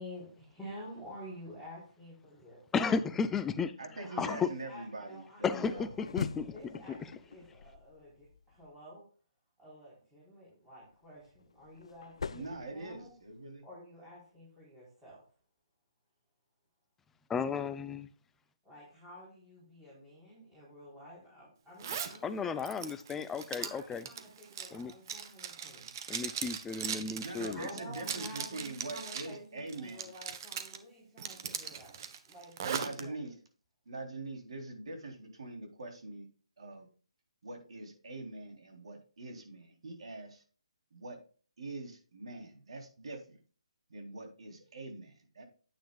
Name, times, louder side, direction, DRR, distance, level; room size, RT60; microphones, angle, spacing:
voice 1, 0.0-2.9 3.9-5.9 6.4-9.1 9.6-13.1 13.6-15.3 18.6-22.9 23.6-25.9 27.5-32.0 32.3-33.4, equal, 5° right, 4.2 m, -50 dB
voice 2, 2.7-3.7 4.2-4.5 5.4-6.5 17.3-18.1 22.2-24.0 24.7-24.9 26.1-27.7, left 5 dB, 10° left, 0.5 m, -33 dB
voice 3, 3.8-5.9 12.3-13.6 27.2-30.1 32.6-33.3 33.9-36.3 36.6-36.9 37.4-40.4 40.9-41.2 41.6-43.4 43.9-45.4, right 2 dB, 65° right, 3.6 m, -43 dB
sound 1, 5.6-8.7 10.9-13.5, left 5 dB, 65° left, 0.5 m, -43 dB
Zipper (clothing), 21.8-22.2 22.6-29.3 29.7-30.8 31.2-33.0, right 8 dB, 35° right, 1.1 m, -39 dB
9.3 x 9.1 x 2.4 m
hypercardioid pair, 160°, 3 cm